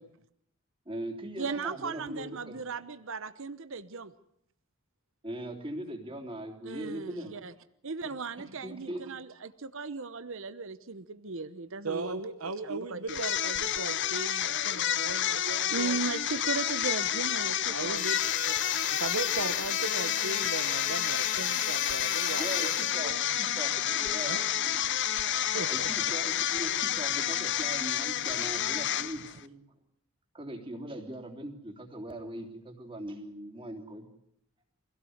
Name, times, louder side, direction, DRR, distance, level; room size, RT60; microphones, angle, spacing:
voice 1, 0.9-2.6 5.2-7.3 8.0-8.1 8.4-9.1 22.4-25.4 25.7-29.6 30.3-34.1, right 1 dB, 25° right, 4 dB, 3.4 m, -40 dB
voice 2, 1.4-4.1 6.6-7.5 7.8-12.2 12.6-13.2 15.7-18.0, right 4 dB, 65° right, 13 dB, 0.9 m, -37 dB
voice 3, 11.8-16.0 17.7-23.2 24.3-24.4 25.5-25.9, right 3 dB, 90° right, 7 dB, 1.3 m, -38 dB
sound 1, 13.1-29.4, left 11 dB, 55° left, 0.9 m, -30 dB
sound 2, 17.9-23.0, left 8 dB, 35° left, 1.2 m, -37 dB
24.5 x 17.0 x 8.0 m, 0.74 s
head